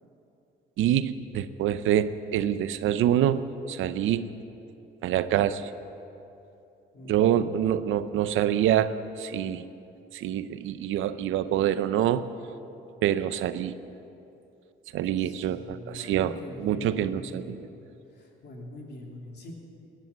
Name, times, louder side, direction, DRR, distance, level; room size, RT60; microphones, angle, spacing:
voice 1, 0.8-4.3 5.0-5.7 7.1-8.9 9.2-9.6 10.1-12.3 13.0-13.7 14.9-17.6, right 11 dB, 85° right, 13 dB, 0.7 m, -26 dB
voice 2, 6.9-7.5 15.2-17.7 18.1-19.5, left 1 dB, 55° left, 0 dB, 3.2 m, -43 dB
19.0 x 10.0 x 7.3 m, 2.8 s
cardioid pair, 90°, 20 cm